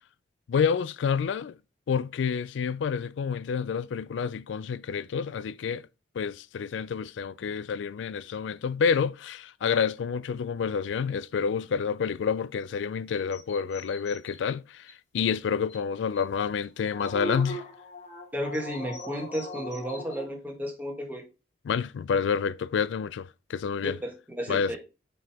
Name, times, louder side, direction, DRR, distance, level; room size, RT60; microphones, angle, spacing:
voice 1, 0.5-1.6 1.9-5.9 6.1-17.6 21.6-24.0 24.5-24.8, left 6 dB, 80° left, 0.3 m, -28 dB
sound 1, 13.1-14.4 14.9-15.0 15.3-15.4 15.7-15.8 16.1-16.2 16.6-20.3, equal, 40° left, 1.1 m, -39 dB
voice 2, 18.3-21.2 23.8-24.8, equal, 10° right, 1.3 m, -33 dB
6.1 x 4.8 x 3.4 m
head